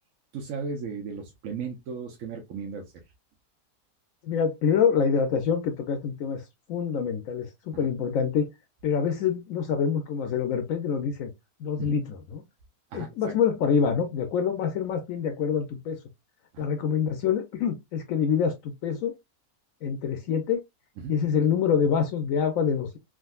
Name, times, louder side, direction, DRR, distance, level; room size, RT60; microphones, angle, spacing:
voice 1, 0.3-2.9 7.7-7.9 11.8-11.9 12.9-13.1 16.5-16.7 21.0-21.1, right 5 dB, 65° right, 1.0 m, -36 dB
voice 2, 4.2-6.4 6.7-8.5 8.8-11.3 11.6-12.4 12.9-16.0 16.6-19.2 19.8-20.6 21.1-23.0, left 7 dB, 70° left, 0.9 m, -26 dB
3.6 x 2.5 x 2.2 m
omnidirectional pair, 1.6 m